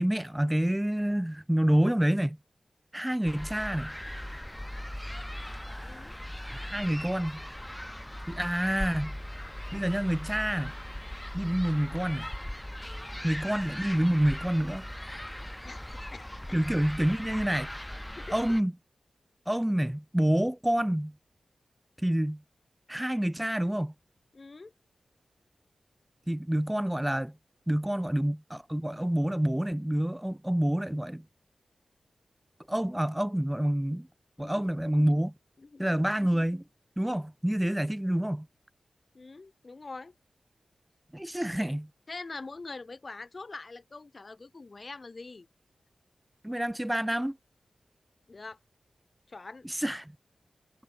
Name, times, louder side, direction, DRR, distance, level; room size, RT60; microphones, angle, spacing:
voice 1, 0.0-2.4 2.9-3.9 6.5-7.4 8.3-9.1 9.7-10.7 11.3-12.3 13.2-14.8 16.5-17.7 18.3-18.7 19.5-21.1 22.0-22.4 22.9-23.9 26.3-27.3 27.7-31.2 32.7-34.1 34.4-35.3 35.8-36.6 37.0-38.5 41.1-41.9 46.4-47.4 49.6-50.1, right 1 dB, 10° right, 0.7 m, -28 dB
sound 1, 3.3-18.6, left 1 dB, 10° left, 3.5 m, -39 dB
voice 2, 5.8-6.2 12.8-13.1 15.6-16.3 18.2-18.4 24.3-24.7 27.9-28.0 34.4-34.5 35.6-36.1 39.1-40.1 42.1-45.5 48.3-48.6 49.3-49.7, left 3 dB, 50° left, 2.3 m, -44 dB
cardioid pair, 45°, 0 cm